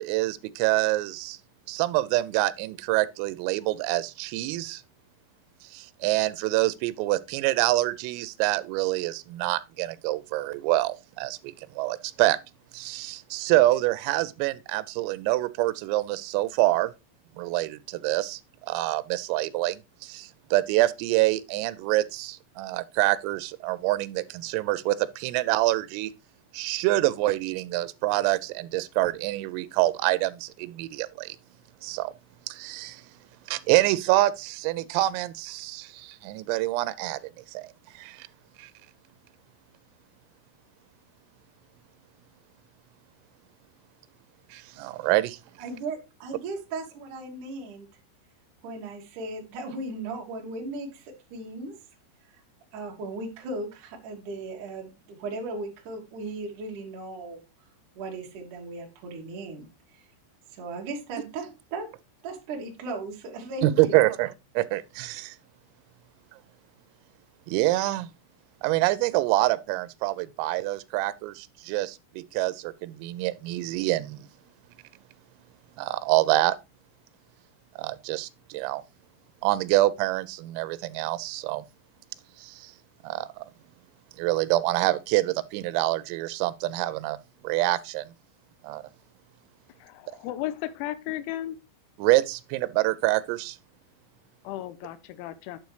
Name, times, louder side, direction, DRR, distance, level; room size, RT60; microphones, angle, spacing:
voice 1, 0.0-1.4 1.7-4.8 5.7-12.4 12.7-16.9 17.4-18.4 18.7-26.1 26.5-31.4 31.8-32.1 32.5-33.0 33.5-37.2 37.5-38.3 38.6-38.7 44.5-45.4 63.6-65.4 67.5-68.1 68.6-74.3 75.8-76.6 77.8-78.8 79.4-81.6 82.4-82.7 83.0-83.3 84.2-87.2 87.4-88.1 88.6-88.8 92.0-93.6, right 17 dB, 90° right, 3.3 m, -26 dB
voice 2, 45.6-47.9 48.6-51.7 52.7-57.4 58.0-59.7 59.9-60.0 60.5-61.9 62.2-64.1, right 3 dB, 60° right, 2.3 m, -36 dB
voice 3, 89.8-91.6 94.4-95.6, left 14 dB, 80° left, 2.9 m, -34 dB
10.5 x 6.8 x 3.2 m
omnidirectional pair, 5.8 m